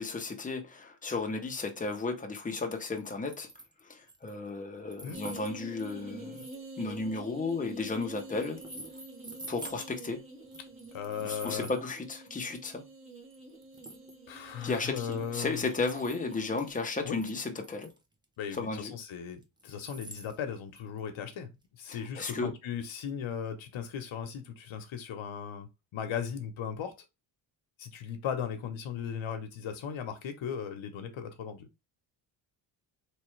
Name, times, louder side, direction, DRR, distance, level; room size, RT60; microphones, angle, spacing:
voice 1, 0.0-3.5 3.9-6.5 6.8-8.6 9.5-10.2 11.2-12.8 14.6-17.9 18.5-18.9 21.9-22.5, left 3 dB, 15° left, 0.8 m, -34 dB
sound 1, 3.0-3.7 4.1-4.5 4.9-7.5 7.9-9.8 10.4-12.0 12.5-12.6 13.3-13.4 13.6-14.5 15.0-16.5 16.7-18.0 18.2-18.3 18.6-18.7 19.4-21.1 21.4-21.5 21.9-22.0, right 2 dB, 10° right, 0.5 m, -48 dB
sound 2, 5.1-16.7, right 2 dB, 25° right, 1.3 m, -47 dB
voice 2, 10.9-11.7 14.3-15.7 17.0-17.2 18.4-21.5 21.8-27.0 27.8-31.7, left 7 dB, 80° left, 1.1 m, -37 dB
4.2 x 3.3 x 3.2 m
wide cardioid pair, 150°, 46 cm